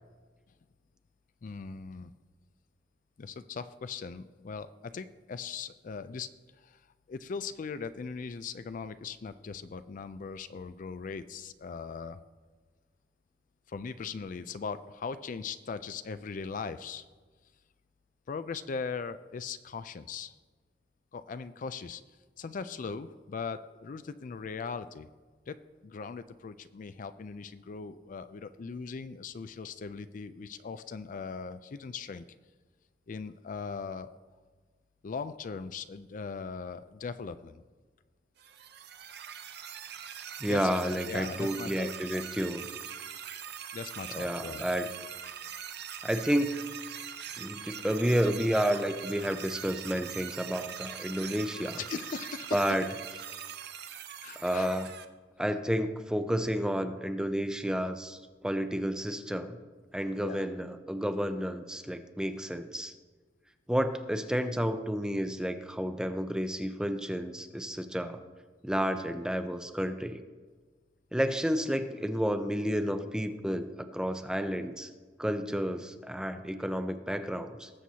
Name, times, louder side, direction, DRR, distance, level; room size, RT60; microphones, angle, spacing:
voice 1, 1.4-2.1 3.2-6.3 6.6-6.8 7.1-12.2 13.7-17.0 18.3-20.3 21.1-22.0 22.4-25.1 25.5-25.6 25.8-32.2 33.1-34.2 35.0-37.6 40.5-40.7 41.1-41.9 43.7-44.6 51.8-52.6 54.2-54.7 60.2-60.5, left 5 dB, 45° left, 12 dB, 0.4 m, -39 dB
sound 1, 38.4-55.0, right 9 dB, 65° right, 0.7 m, -42 dB
voice 2, 40.4-42.7 44.1-44.9 46.0-46.6 47.4-51.8 52.5-52.8 54.4-54.9 55.4-58.2 58.4-59.6 59.9-62.9 63.7-68.2 68.6-70.2 71.1-74.9 75.2-77.7, equal, 5° right, 8 dB, 0.5 m, -31 dB
19.0 x 7.6 x 2.8 m, 1.4 s
head